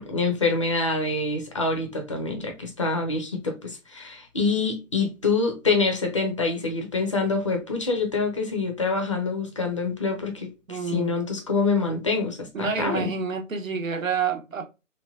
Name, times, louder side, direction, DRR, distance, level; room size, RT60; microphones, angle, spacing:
voice 1, 0.0-13.1, left 3 dB, 25° left, 0.4 m, -26 dB
voice 2, 10.7-11.2 12.5-14.7, right 5 dB, 85° right, 0.8 m, -28 dB
3.2 x 2.2 x 2.4 m
figure-of-eight pair, 140°, 39 cm